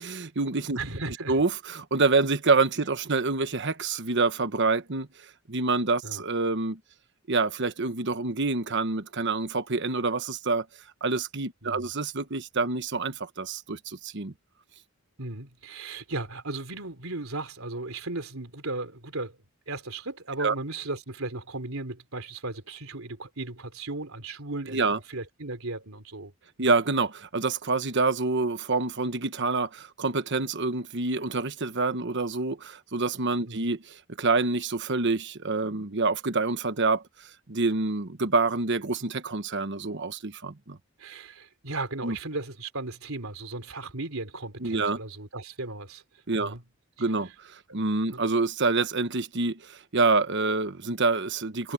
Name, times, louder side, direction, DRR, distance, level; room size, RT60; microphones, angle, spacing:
voice 1, 0.0-0.8 1.3-5.1 5.5-6.8 7.3-10.7 11.0-14.3 20.4-20.5 24.7-25.0 26.6-33.8 34.2-40.8 42.0-42.2 44.6-45.0 46.3-46.5 47.0-51.7, right 3 dB, 55° right, 1.2 m, -27 dB
voice 2, 0.7-1.3 6.0-6.2 11.6-11.9 15.2-19.4 19.7-26.3 26.6-26.7 33.4-33.6 41.0-46.0 46.4-46.6 47.0-47.1 48.1-48.2, right 2 dB, 80° right, 3.5 m, -36 dB
head